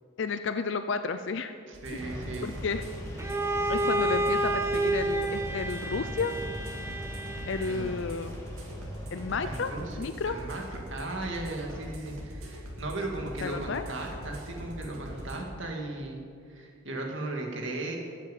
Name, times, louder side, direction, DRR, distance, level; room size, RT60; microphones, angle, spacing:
voice 1, 0.2-1.5 2.4-2.8 3.7-6.4 7.5-8.4 9.1-9.7 10.0-10.4 13.4-13.8, left 4 dB, 60° left, 9 dB, 0.5 m, -32 dB
voice 2, 1.7-2.5 7.7-7.9 9.4-10.0 10.3-16.2 16.5-18.0, right 2 dB, 65° right, 0 dB, 2.2 m, -36 dB
sound 1, 1.7-15.3, equal, 90° right, 2.8 m, -42 dB
sound 2, 1.9-9.6, equal, 15° left, 1.8 m, -41 dB
Bowed string instrument, 3.2-8.0, right 1 dB, 10° right, 0.6 m, -30 dB
14.5 x 7.5 x 7.5 m, 2.2 s
head